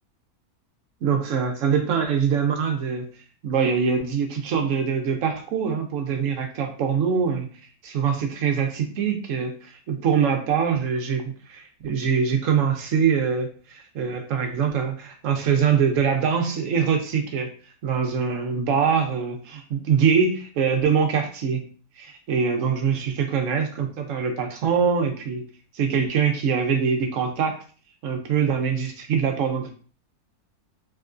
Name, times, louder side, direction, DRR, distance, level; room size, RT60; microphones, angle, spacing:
voice 1, 1.0-3.0 3.4-7.5 7.8-17.5 17.8-21.6 22.0-25.4 25.7-27.6 28.0-29.7, right 6 dB, 65° right, 4 dB, 0.9 m, -23 dB
3.3 x 3.0 x 2.5 m, 0.41 s
omnidirectional pair, 1.6 m